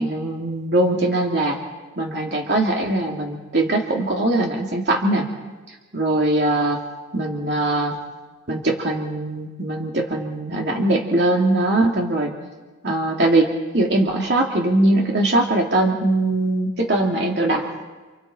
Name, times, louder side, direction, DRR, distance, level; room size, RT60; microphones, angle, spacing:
voice 1, 0.0-1.6 2.0-5.3 5.9-6.8 7.1-8.0 8.5-12.3 12.8-17.6, right 2 dB, 60° right, -1 dB, 2.7 m, -21 dB
29.5 x 29.0 x 4.4 m, 1.3 s
head